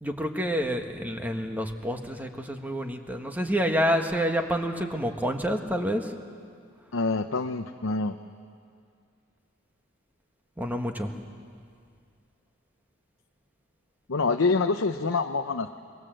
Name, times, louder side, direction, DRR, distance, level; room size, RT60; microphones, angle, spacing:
voice 1, 0.0-6.1 10.6-11.1, equal, 10° right, 4 dB, 1.5 m, -28 dB
voice 2, 6.9-8.2 14.1-15.8, left 3 dB, 70° left, 6 dB, 0.8 m, -26 dB
25.5 x 22.5 x 7.8 m, 2.2 s
head